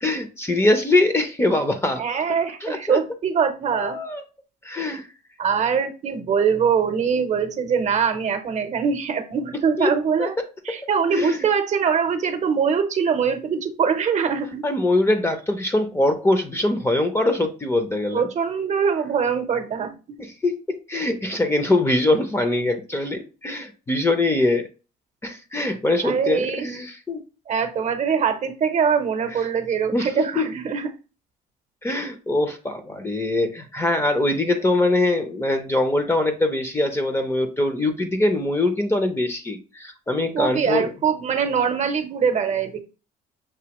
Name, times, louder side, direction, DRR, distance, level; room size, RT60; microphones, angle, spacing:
voice 1, 0.0-2.0 2.6-3.0 3.7-4.2 4.6-5.1 9.8-9.9 10.2-10.4 11.1-11.5 14.6-18.3 19.8-19.9 20.2-24.7 25.2-27.2 29.9-30.4 31.8-40.9, left 2 dB, 15° left, 7 dB, 0.6 m, -23 dB
voice 2, 2.0-4.0 5.4-10.3 10.6-14.6 18.1-19.9 26.0-26.7 27.5-30.9 40.3-42.8, right 6 dB, 45° right, 8 dB, 0.8 m, -23 dB
6.1 x 2.7 x 2.9 m, 0.33 s
cardioid pair, 110°, 17 cm